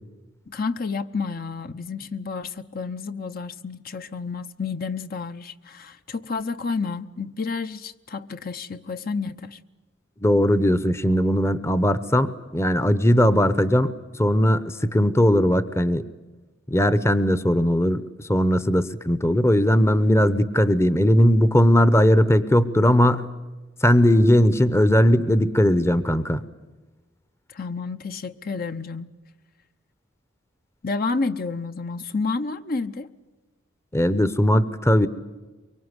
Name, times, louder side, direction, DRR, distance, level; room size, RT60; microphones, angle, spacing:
voice 1, 0.5-9.6 27.5-29.1 30.8-33.1, left 4 dB, 50° left, 0.8 m, -30 dB
voice 2, 10.2-13.9 14.2-16.0 16.7-23.3 23.8-26.4 33.9-35.1, equal, 15° left, 0.8 m, -19 dB
24.0 x 24.0 x 9.7 m
head